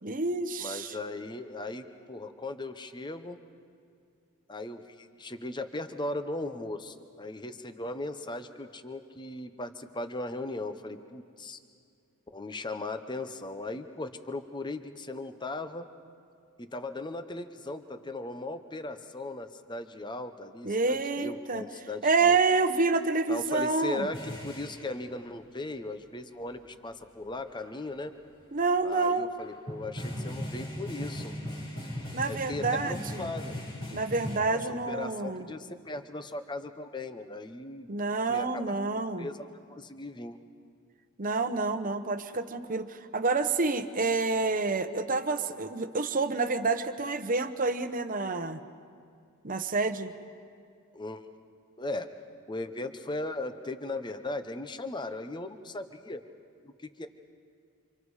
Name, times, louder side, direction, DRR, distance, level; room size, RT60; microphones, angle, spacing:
voice 1, 0.0-1.0 20.6-21.6 22.0-24.1 28.5-29.3 32.1-33.3 33.9-35.5 37.9-39.3 41.2-48.6 49.4-50.1, right 3 dB, 40° right, 9 dB, 1.0 m, -28 dB
voice 2, 0.6-3.4 4.5-11.6 12.3-15.8 16.7-22.4 23.3-28.1 28.8-31.3 32.3-33.6 34.5-37.9 38.3-38.6 39.2-40.4 50.9-51.3 51.8-52.1 52.5-56.2 57.0-57.1, left 2 dB, 20° left, 9 dB, 0.9 m, -38 dB
sound 1, 24.1-25.0 26.3-26.4 26.9-27.0 27.5-27.8 29.4-34.4, equal, 60° left, 5.3 m, -38 dB
29.0 x 27.0 x 4.9 m, 2.3 s
head